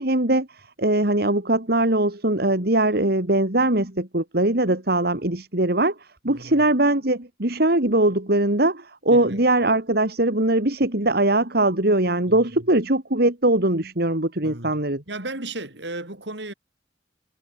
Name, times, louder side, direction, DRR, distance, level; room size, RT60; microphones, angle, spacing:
voice 1, 0.0-15.0, right 1 dB, 60° right, 3.1 m, -21 dB
voice 2, 6.3-6.6 9.1-9.3 12.3-12.5 14.4-14.8 15.1-16.5, right 2 dB, 80° right, 5.8 m, -35 dB
head